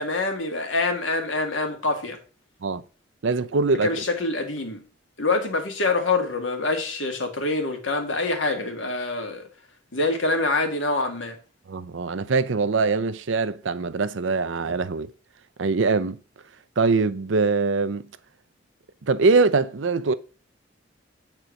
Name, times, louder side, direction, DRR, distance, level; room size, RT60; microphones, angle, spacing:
voice 1, 0.0-2.2 3.8-4.8 5.2-9.4 9.9-11.4, left 3 dB, 75° left, 1.9 m, -25 dB
voice 2, 3.2-4.0 11.7-15.1 15.6-16.2 16.8-18.0 19.0-20.1, right 4 dB, 70° right, 0.6 m, -22 dB
8.0 x 4.4 x 6.2 m
head